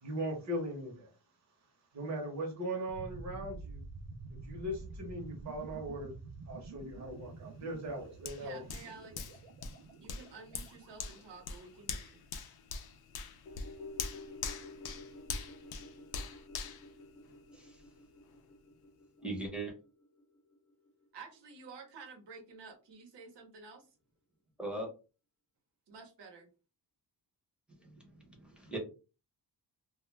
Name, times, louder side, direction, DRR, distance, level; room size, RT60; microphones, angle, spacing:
voice 1, 0.0-1.1 1.9-3.8 4.3-6.1 6.5-8.6, right 1 dB, 40° right, 1 dB, 0.9 m, -39 dB
sound 1, 2.9-11.8, right 3 dB, 60° right, 0.5 m, -49 dB
Hands, 8.3-17.8 18.2-18.4, left 5 dB, 65° left, 0.5 m, -43 dB
voice 2, 8.4-9.4 10.0-12.2 21.1-23.9 25.9-26.5, right 4 dB, 90° right, 3 dB, 0.9 m, -51 dB
sound 2, 13.5-21.9 22.2-22.3, left 2 dB, 30° left, 0.9 m, -52 dB
voice 3, 19.2-19.7 24.6-24.9 27.8-28.8, right 2 dB, ahead, 0 dB, 0.7 m, -40 dB
2.3 x 2.1 x 3.1 m, 0.32 s
wide cardioid pair, 155°, 41 cm